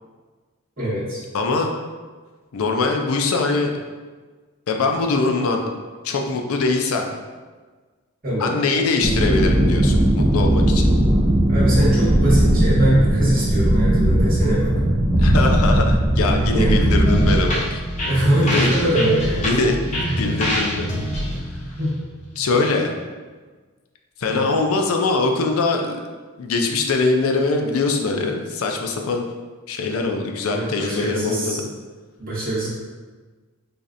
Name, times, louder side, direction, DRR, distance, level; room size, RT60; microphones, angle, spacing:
voice 1, 0.8-1.2 8.2-8.5 11.5-14.8 16.5-16.9 18.0-19.5 20.1-20.2 21.8-21.9 24.3-24.4 30.5-31.6 32.2-32.7, right 1 dB, 40° right, -8 dB, 1.5 m, -22 dB
voice 2, 1.3-1.7 2.5-3.7 4.7-5.6 6.0-7.1 8.4-10.9 15.2-17.8 18.4-18.7 19.4-19.8 20.2-21.0 21.5-21.6 22.4-22.9 24.2-26.0 26.4-29.3 29.7-31.7, left 3 dB, 75° left, 3 dB, 0.4 m, -22 dB
sound 1, 9.0-17.4, right 1 dB, 20° right, 0.3 m, -17 dB
sound 2, 17.0-22.7, equal, 30° left, 0.6 m, -26 dB
4.1 x 3.1 x 2.5 m, 1.4 s
head